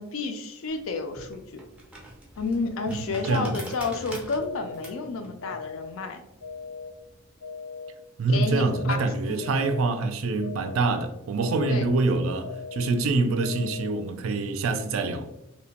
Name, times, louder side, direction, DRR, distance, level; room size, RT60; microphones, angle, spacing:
voice 1, 0.0-1.6 2.4-6.2 8.3-9.7 11.7-11.9, left 4 dB, 70° left, 0.4 m, -31 dB
sound 1, 0.7-7.3, right 1 dB, 5° right, 0.4 m, -44 dB
sound 2, 4.4-4.9 5.4-5.9 6.4-6.9 7.4-7.9 8.4-8.9 9.4-9.9 10.4-10.9 11.4-11.9 12.4-12.9 13.4-13.9, left 4 dB, 85° left, 0.8 m, -39 dB
voice 2, 8.2-15.3, right 3 dB, 70° right, 0.3 m, -25 dB
2.8 x 2.1 x 2.8 m
head